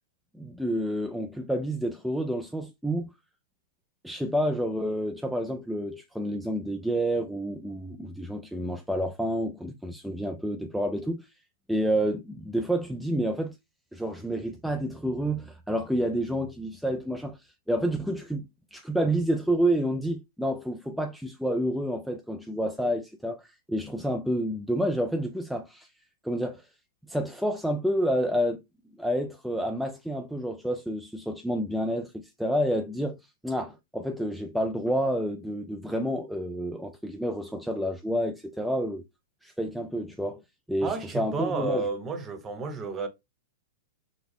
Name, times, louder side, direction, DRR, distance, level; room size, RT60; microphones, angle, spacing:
voice 1, 0.3-3.1 4.0-11.3 11.7-13.6 13.9-18.4 18.7-25.9 26.2-26.7 27.1-28.6 29.0-33.2 33.4-39.0 39.4-40.4 40.7-41.9, equal, ahead, 0.4 m, -29 dB
voice 2, 40.8-43.1, right 4 dB, 20° right, 0.9 m, -31 dB
6.1 x 2.2 x 3.5 m
hypercardioid pair, 150°, 0 cm